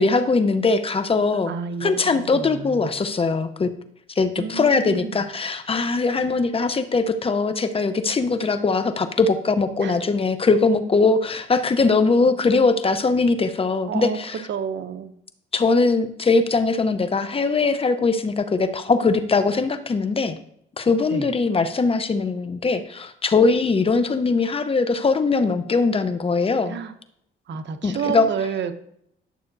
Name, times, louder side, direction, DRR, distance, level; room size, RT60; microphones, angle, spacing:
voice 1, 0.0-1.5 1.8-3.7 4.2-14.4 15.5-20.4 20.8-26.8 27.8-28.3, left 4 dB, 30° left, 10 dB, 0.8 m, -21 dB
voice 2, 1.3-2.9 4.4-5.2 9.8-10.0 13.9-14.2 14.5-15.1 21.1-21.3 26.7-26.9 27.5-28.8, right 6 dB, 65° right, 8 dB, 0.9 m, -30 dB
11.0 x 6.6 x 2.7 m, 0.70 s
cardioid pair, 90°, 20 cm